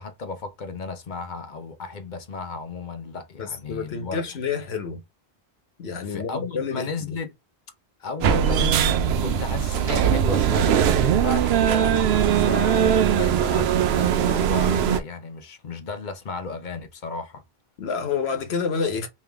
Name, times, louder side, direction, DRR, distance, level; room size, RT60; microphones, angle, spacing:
voice 1, 0.0-4.2 6.0-7.3 8.0-17.4, left 4 dB, 50° left, 0.8 m, -34 dB
voice 2, 3.4-5.0 5.8-7.2 17.8-19.1, left 5 dB, 90° left, 1.2 m, -28 dB
sound 1, 8.2-15.0, right 8 dB, 85° right, 0.8 m, -20 dB
3.5 x 3.0 x 3.4 m
omnidirectional pair, 1.0 m